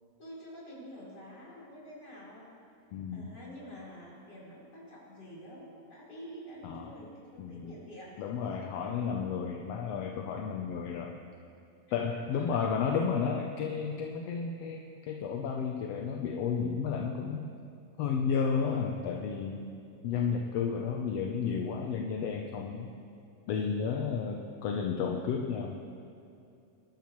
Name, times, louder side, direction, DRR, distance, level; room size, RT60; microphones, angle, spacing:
voice 1, 0.2-2.5 3.1-8.5 12.3-12.7 24.1-24.8, equal, 30° left, -7 dB, 4.6 m, -48 dB
voice 2, 2.9-3.4 6.6-6.9 7.4-7.8 8.2-11.2 11.9-17.5 18.0-19.7 20.0-22.9 23.5-25.8, left 6 dB, 70° left, 1 dB, 1.6 m, -32 dB
23.0 x 12.5 x 3.1 m, 2.5 s
omnidirectional pair, 3.4 m